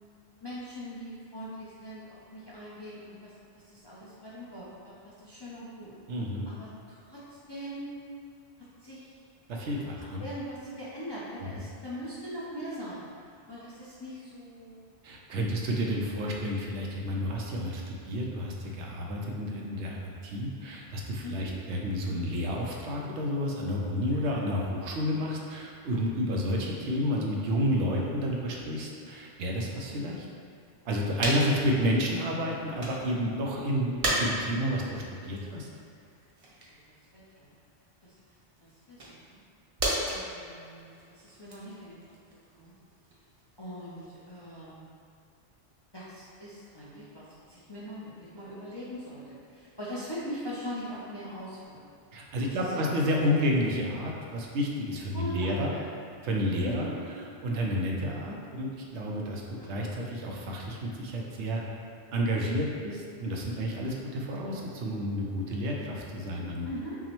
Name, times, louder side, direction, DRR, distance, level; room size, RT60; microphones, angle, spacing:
voice 1, 0.4-5.9 6.5-7.8 8.8-9.1 9.9-13.0 13.5-14.8 15.5-15.8 21.2-21.5 24.1-24.4 36.7-36.8 37.1-37.5 38.0-38.1 38.9-39.4 40.1-42.0 42.5-42.7 43.6-44.8 45.9-51.9 52.5-53.0 55.1-55.8 56.6-56.9 59.6-59.8 66.6-67.0, equal, 30° left, -9 dB, 0.5 m, -41 dB
voice 2, 6.1-6.5 9.5-10.2 11.4-11.6 15.0-20.0 20.2-30.2 30.8-35.7 52.1-55.7 56.2-56.9 57.4-61.6 62.1-66.7, equal, 85° right, -1 dB, 0.9 m, -30 dB
sound 1, 30.7-30.8 31.2-33.1 33.5-44.6, right 1 dB, 40° right, 0.6 m, -36 dB
5.9 x 2.0 x 3.0 m, 2.4 s
omnidirectional pair, 1.2 m